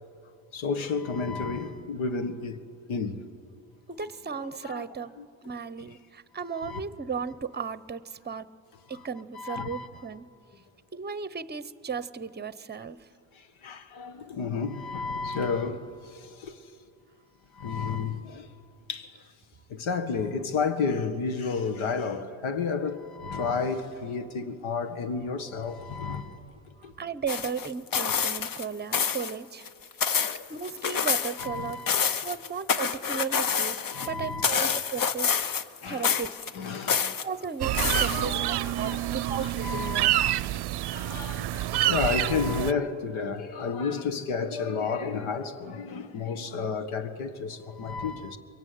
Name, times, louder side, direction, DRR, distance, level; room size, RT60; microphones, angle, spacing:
voice 1, 0.5-2.6 2.9-3.2 4.3-4.8 5.2-5.3 6.5-6.8 9.3-9.9 13.6-15.9 16.4-16.5 17.6-18.5 18.9-19.1 19.7-26.4 26.8-26.9 30.2-30.5 31.4-32.1 33.9-34.7 35.8-36.1 36.5-37.1 38.0-40.4 40.9-48.4, left 5 dB, 90° left, 1.8 m, -31 dB
voice 2, 3.9-5.1 5.4-8.5 8.9-10.3 10.9-13.0 27.0-29.7 30.5-31.8 32.2-35.4 35.9-36.5 37.2-40.1 41.1-41.3 48.2-48.3, right 6 dB, 20° right, 0.8 m, -35 dB
sound 1, 27.3-28.6 28.9-29.3 29.7-31.5 31.7-34.1 34.4-35.8 36.0-37.2 37.7-38.5 38.9-39.0, left 7 dB, 45° left, 1.0 m, -27 dB
sound 2, 37.6-42.7, right 14 dB, 55° right, 0.6 m, -27 dB
23.0 x 23.0 x 9.4 m
cardioid pair, 115°, 47 cm